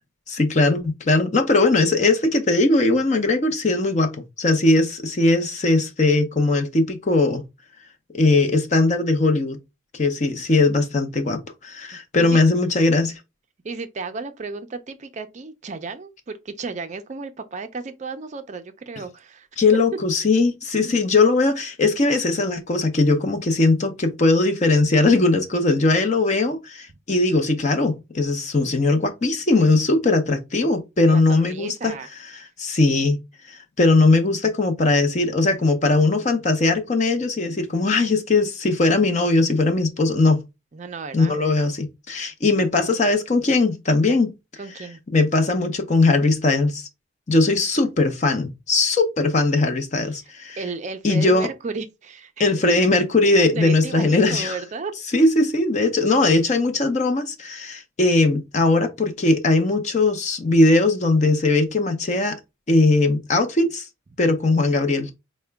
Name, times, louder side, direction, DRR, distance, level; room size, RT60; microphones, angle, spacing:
voice 1, 0.3-7.4 8.1-9.6 9.9-13.1 19.6-31.9 32.4-33.2 33.5-40.4 41.1-44.3 44.8-44.9 45.1-46.9 47.3-50.6 51.0-51.5 52.4-54.6 55.1-62.4 62.7-63.9 64.2-65.1, left 2 dB, 35° left, 0.6 m, -19 dB
voice 2, 13.6-19.5 31.1-32.1 40.7-41.4 44.6-45.0 50.6-52.3 53.5-54.9, right 4 dB, 35° right, 0.4 m, -33 dB
4.7 x 2.1 x 3.3 m
head